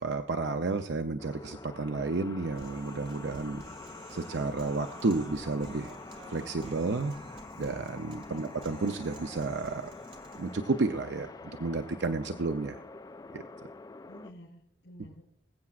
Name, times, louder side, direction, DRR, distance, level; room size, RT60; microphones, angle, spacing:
voice 1, 0.0-3.6 4.1-9.9 10.4-12.8 13.3-13.4, right 3 dB, 75° right, 7 dB, 0.6 m, -32 dB
sound 1, 1.2-14.3, left 3 dB, 20° left, 0.3 m, -47 dB
Human voice, 2.5-10.6, right 1 dB, 30° right, 1.9 m, -50 dB
voice 2, 14.1-15.2, equal, 90° left, -4 dB, 3.5 m, -51 dB
21.0 x 8.5 x 2.4 m, 0.70 s
head